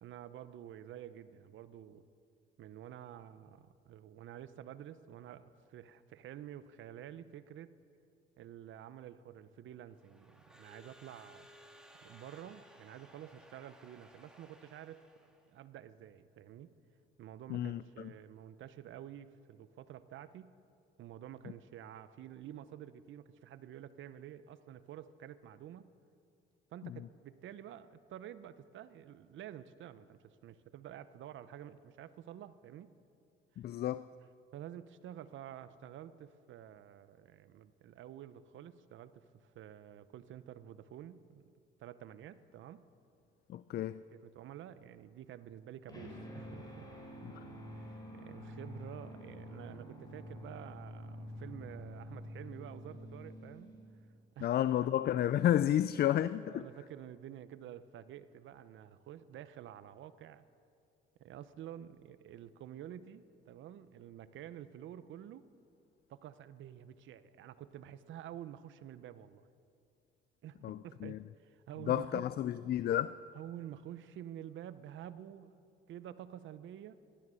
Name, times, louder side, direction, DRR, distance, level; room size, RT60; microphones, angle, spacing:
voice 1, 0.0-2.0 2.6-7.7 8.4-11.5 12.0-15.0 15.5-16.7 17.2-20.5 21.0-25.9 26.7-32.9 34.5-41.4 41.8-42.8 44.1-46.9 47.7-53.7 54.4-54.6 56.4-60.4 61.2-65.5 66.1-69.5 70.4-72.3 73.3-75.6 75.9-77.0, right 11 dB, 75° right, 0.7 m, -49 dB
Crowd / Alarm, 9.9-15.5, equal, 5° right, 1.8 m, -59 dB
voice 2, 17.5-18.1 33.6-34.1 43.5-44.0 47.2-47.3 54.4-56.7 70.6-71.2 71.9-73.2, left 11 dB, 55° left, 0.4 m, -31 dB
sound 1, 45.9-54.1, equal, 20° left, 4.2 m, -48 dB
16.0 x 12.5 x 6.3 m
cardioid pair, 90°, 20 cm